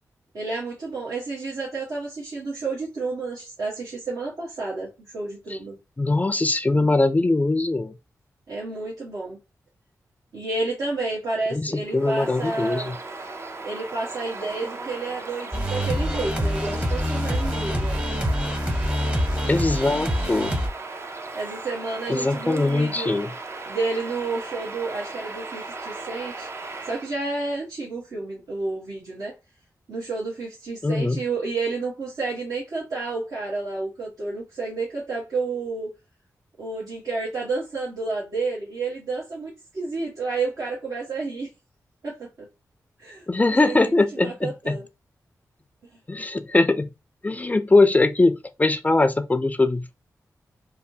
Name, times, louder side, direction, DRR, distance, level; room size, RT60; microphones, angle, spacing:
voice 1, 0.3-5.8 8.5-9.4 10.3-12.9 13.6-17.9 21.3-23.2 23.7-26.5 26.8-29.3 29.9-35.9 36.6-41.5 42.0-42.5 43.0-44.8, right 3 dB, 75° right, 1.2 m, -30 dB
voice 2, 6.0-7.9 11.5-13.0 19.5-20.5 22.1-23.3 30.8-31.2 43.3-44.8 46.1-46.9 47.2-50.0, left 2 dB, 25° left, 0.4 m, -21 dB
Bird vocalization bird call bird song, 11.9-27.1, right 3 dB, 40° right, 0.5 m, -37 dB
sound 1, 15.5-20.7, equal, 20° right, 0.8 m, -25 dB
3.0 x 2.1 x 2.7 m
cardioid pair, 55°, 7 cm